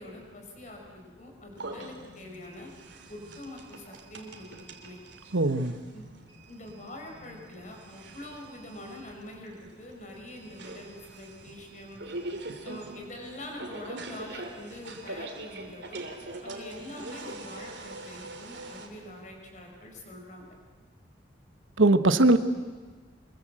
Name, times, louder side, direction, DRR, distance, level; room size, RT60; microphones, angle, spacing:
voice 1, 0.0-2.7 3.1-5.0 5.9-6.1 6.5-12.0 12.6-16.0 16.4-20.6, left 1 dB, 40° left, 2 dB, 5.3 m, -44 dB
sound 1, 1.5-18.9, right 2 dB, 65° right, 3.0 m, -43 dB
voice 2, 5.3-5.7 21.8-22.4, right 2 dB, 85° right, 10 dB, 1.3 m, -20 dB
25.0 x 22.5 x 7.8 m, 1.4 s
head